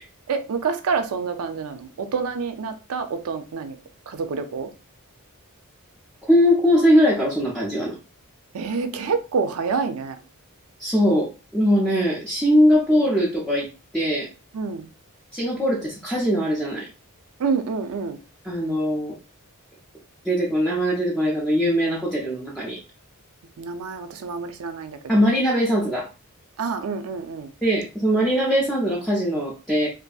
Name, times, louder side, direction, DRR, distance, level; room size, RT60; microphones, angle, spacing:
voice 1, 0.3-3.8 4.1-4.7 8.5-10.2 14.5-14.9 17.4-18.2 23.6-25.0 26.6-27.5, right 5 dB, 70° right, 0.4 m, -27 dB
voice 2, 6.3-7.9 10.8-13.7 13.9-14.3 15.3-16.9 18.4-19.1 20.2-22.8 25.1-26.1 27.6-29.9, equal, 5° left, 0.4 m, -21 dB
2.6 x 2.4 x 2.3 m
head